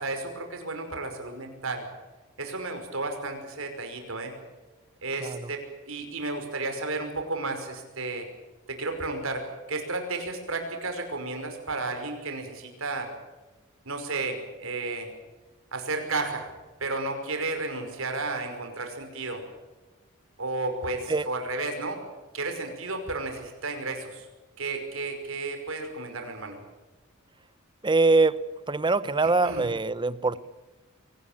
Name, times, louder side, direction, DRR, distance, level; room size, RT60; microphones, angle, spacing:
voice 1, 0.0-1.8 2.4-4.3 5.0-8.3 8.7-9.4 9.7-13.1 13.9-15.1 15.7-16.5 16.8-19.4 20.4-22.0 22.3-24.3 24.6-26.6 29.2-29.7, right 3 dB, 65° right, 5 dB, 5.6 m, -33 dB
voice 2, 27.8-28.4 28.7-30.4, right 3 dB, 20° right, 17 dB, 0.8 m, -23 dB
24.5 x 19.0 x 9.0 m, 1.2 s
head